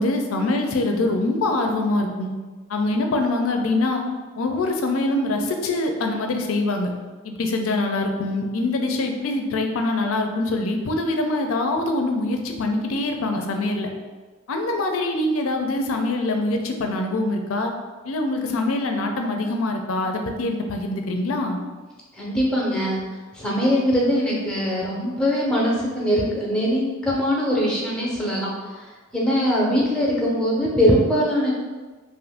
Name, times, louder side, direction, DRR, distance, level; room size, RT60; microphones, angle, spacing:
voice 1, 0.0-2.3 2.7-4.0 4.4-6.9 7.2-13.9 14.5-17.7 18.1-21.6, left 2 dB, 85° left, 4 dB, 0.4 m, -24 dB
voice 2, 22.1-23.0 23.3-28.9 29.1-31.5, equal, 5° left, -4 dB, 0.6 m, -22 dB
2.6 x 2.5 x 3.5 m, 1.3 s
head